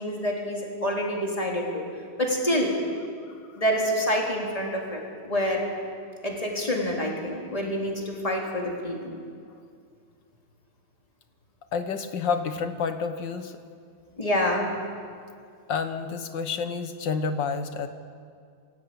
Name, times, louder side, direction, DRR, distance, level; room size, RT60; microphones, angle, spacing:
voice 1, 0.0-1.8 2.2-2.7 3.6-5.6 6.2-9.1 14.2-14.7, equal, 15° left, -2 dB, 3.7 m, -27 dB
voice 2, 11.7-13.5 15.7-17.9, left 5 dB, 60° left, 8 dB, 1.8 m, -29 dB
24.0 x 16.0 x 8.8 m, 2.2 s
omnidirectional pair, 2.3 m